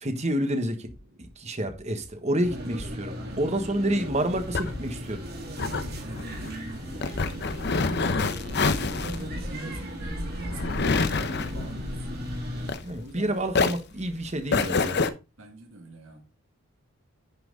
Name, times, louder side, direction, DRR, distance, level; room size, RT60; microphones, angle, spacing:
voice 1, 0.0-0.9 1.2-5.2 12.8-15.1, right 1 dB, 30° right, 1.3 m, -29 dB
sound 1, 0.9-1.3 1.7-2.1 2.5-2.9 3.3-3.7 4.1-4.5 4.9-5.3 5.7-6.1, right 1 dB, 85° right, 3.3 m, -50 dB
sound 2, 2.4-12.7, equal, 45° right, 3.2 m, -36 dB
voice 2, 3.1-4.0 5.5-8.1 8.4-12.3 13.0-13.5 15.4-16.3, right 2 dB, 60° right, 2.1 m, -43 dB
sound 3, 4.1-13.2 13.5-15.1, left 4 dB, 50° left, 0.8 m, -28 dB
10.0 x 6.0 x 3.9 m
head